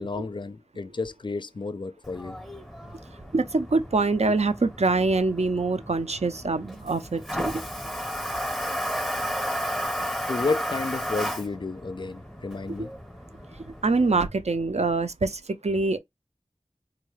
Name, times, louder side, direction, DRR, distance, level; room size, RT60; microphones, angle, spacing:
voice 1, 0.0-2.4 10.3-12.9, left 3 dB, 40° left, 0.4 m, -31 dB
Toilet flush, 2.0-14.3, equal, ahead, 0.7 m, -34 dB
voice 2, 3.3-7.6 13.8-16.0, right 3 dB, 65° right, 0.5 m, -24 dB
3.7 x 2.2 x 3.1 m
wide cardioid pair, 40°, 12 cm